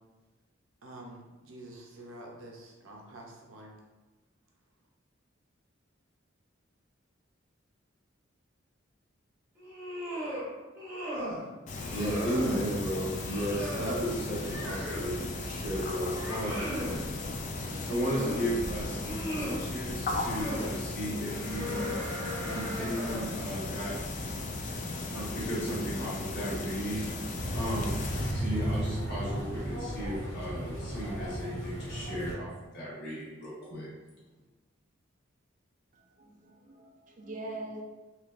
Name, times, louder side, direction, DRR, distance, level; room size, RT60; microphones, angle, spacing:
voice 1, 0.8-3.7, right 1 dB, 85° right, 0 dB, 0.6 m, -47 dB
sound 1, 9.6-10.5 10.7-11.4 11.8-12.7 13.1-15.2 15.6-17.0 17.7-18.6 18.9-19.7 20.2-20.7 21.3-23.4, equal, 15° right, 1.0 m, -37 dB
sound 2, 11.7-28.3, left 2 dB, 40° left, 0.3 m, -36 dB
voice 2, 11.9-16.7 17.5-22.0 22.4-23.9 25.1-33.9, equal, 55° left, -7 dB, 1.3 m, -35 dB
sound 3, 27.4-32.3, equal, 90° left, 0.9 m, -34 dB
voice 3, 36.2-37.8, right 2 dB, 40° right, 1 dB, 0.4 m, -42 dB
3.2 x 2.8 x 2.5 m, 1.2 s
head